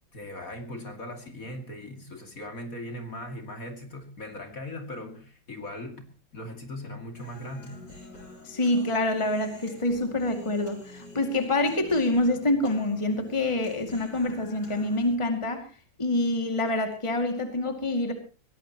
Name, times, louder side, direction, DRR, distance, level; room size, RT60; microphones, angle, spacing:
voice 1, 0.1-6.0 6.3-7.8, left 1 dB, 45° left, 5 dB, 2.9 m, -39 dB
Human voice, 7.1-15.2, left 2 dB, 60° left, 4.8 m, -47 dB
voice 2, 8.4-15.6 16.0-18.1, left 2 dB, 15° left, 5 dB, 2.3 m, -26 dB
22.0 x 18.0 x 3.0 m, 0.36 s
omnidirectional pair, 2.1 m